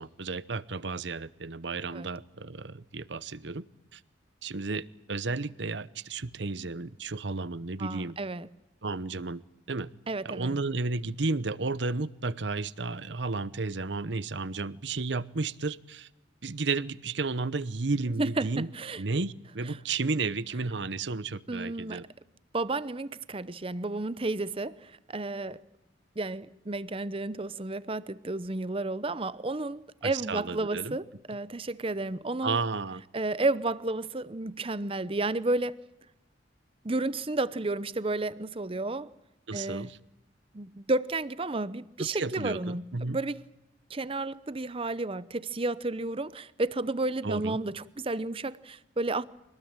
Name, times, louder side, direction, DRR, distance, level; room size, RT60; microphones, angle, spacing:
voice 1, 0.0-3.6 3.9-4.0 4.4-8.2 8.8-9.4 9.7-9.9 10.2-16.1 16.4-18.7 19.0-22.0 30.0-31.0 32.4-33.0 39.5-40.0 42.0-43.2 47.2-47.6, right 3 dB, 70° right, 0.9 m, -33 dB
voice 2, 7.8-8.5 10.1-10.6 18.2-19.0 21.5-22.1 22.5-25.6 26.2-32.6 33.1-35.8 36.8-39.1 39.5-39.9 40.5-43.4 43.9-49.2, right 2 dB, 30° right, 0.8 m, -32 dB
25.5 x 19.5 x 9.0 m
head